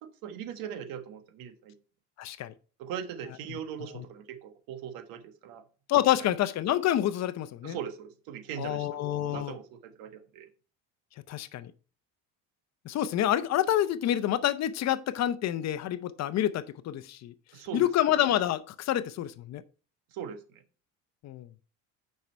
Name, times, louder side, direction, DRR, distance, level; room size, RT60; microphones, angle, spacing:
voice 1, 0.0-1.8 2.8-5.6 6.2-6.3 7.6-10.5 17.5-17.9 20.1-20.6, right 8 dB, 80° right, 1.4 m, -40 dB
voice 2, 2.2-2.5 3.9-4.0 5.9-7.8 8.6-9.6 11.3-11.7 12.8-17.3 17.7-19.6 21.2-21.5, left 12 dB, 50° left, 0.7 m, -28 dB
9.3 x 5.5 x 4.4 m
cardioid pair, 135°, 34 cm